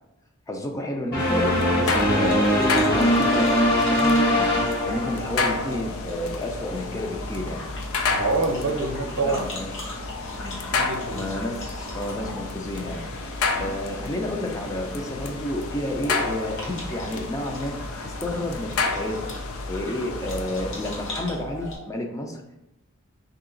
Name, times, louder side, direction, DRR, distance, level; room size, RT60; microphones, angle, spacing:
voice 1, 0.5-4.5 4.8-7.7 9.2-9.7 10.4-10.6 11.1-13.0 13.6-17.7 18.0-19.3 19.7-22.4, left 1 dB, 15° left, 2 dB, 0.4 m, -31 dB
sound 1, 1.1-5.6, equal, 50° left, 1.2 m, -21 dB
sound 2, 1.2-21.1, left 4 dB, 80° left, 0.4 m, -32 dB
sound 3, 1.8-21.8, left 1 dB, 65° left, 1.0 m, -37 dB
voice 2, 8.0-9.5 10.7-11.3 13.4-13.6, right 3 dB, 65° right, 3 dB, 0.6 m, -26 dB
3.1 x 2.8 x 3.8 m, 0.87 s
head